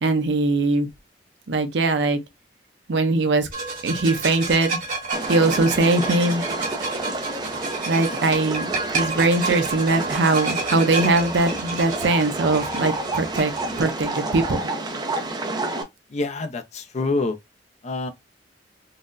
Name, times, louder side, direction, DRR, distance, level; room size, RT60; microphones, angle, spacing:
voice 1, 0.0-0.9 1.5-2.2 2.9-3.5 3.8-4.8 5.3-6.4 7.8-13.5 13.8-14.6, right 2 dB, 75° right, 0.6 m, -21 dB
sound 1, 3.5-13.8, right 3 dB, 50° right, 1.5 m, -30 dB
sound 2, 5.1-15.8, right 2 dB, 25° right, 0.5 m, -30 dB
voice 2, 16.1-17.4 17.8-18.1, left 3 dB, 40° left, 0.5 m, -26 dB
3.9 x 2.1 x 2.5 m
head